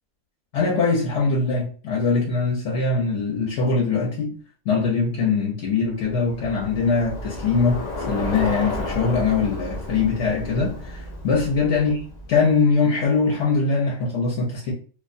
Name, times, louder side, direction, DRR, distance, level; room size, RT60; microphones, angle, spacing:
voice 1, 0.5-4.4 4.7-7.8 8.1-11.9 12.3-14.7, left 4 dB, 65° left, 0.9 m, -22 dB
Bicycle, 6.0-12.5, left 1 dB, 85° left, 0.3 m, -32 dB
2.4 x 2.1 x 2.5 m
omnidirectional pair, 1.4 m